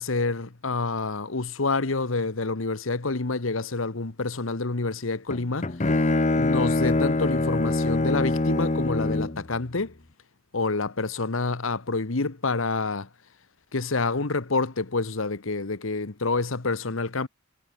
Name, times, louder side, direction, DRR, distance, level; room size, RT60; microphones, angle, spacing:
voice 1, 0.0-5.8 6.3-10.0 10.5-13.1 13.7-17.3, left 3 dB, 70° left, 1.2 m, -28 dB
Bowed string instrument, 5.3-9.5, left 2 dB, 35° left, 0.9 m, -24 dB
head